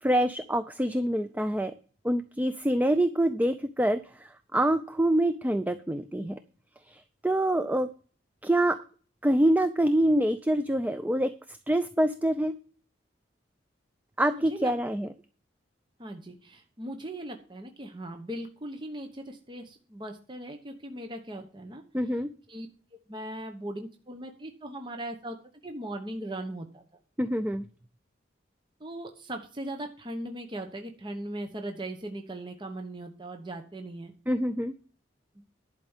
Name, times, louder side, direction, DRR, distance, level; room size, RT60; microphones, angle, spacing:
voice 1, 0.0-1.7 2.0-6.4 6.9-7.9 8.4-8.8 9.2-12.5 14.2-15.1 21.9-22.3 27.2-27.7 34.3-34.7, right 1 dB, 10° right, 11 dB, 0.4 m, -26 dB
voice 2, 14.3-14.7 16.0-21.8 22.5-22.7 23.1-25.4 25.6-26.8 28.8-34.1, right 1 dB, 25° right, 5 dB, 1.0 m, -39 dB
11.0 x 5.2 x 7.2 m, 0.41 s
head